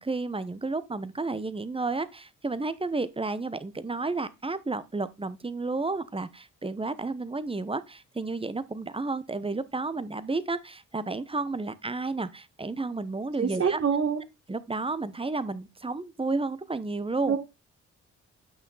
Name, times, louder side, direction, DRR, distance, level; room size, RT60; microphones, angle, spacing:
voice 1, 0.0-13.8 14.5-17.4, right 3 dB, 20° right, 1.1 m, -32 dB
voice 2, 13.4-14.2 17.3-17.4, right 6 dB, 50° right, 1.7 m, -25 dB
8.9 x 5.8 x 4.0 m
supercardioid pair, 55°, 30 cm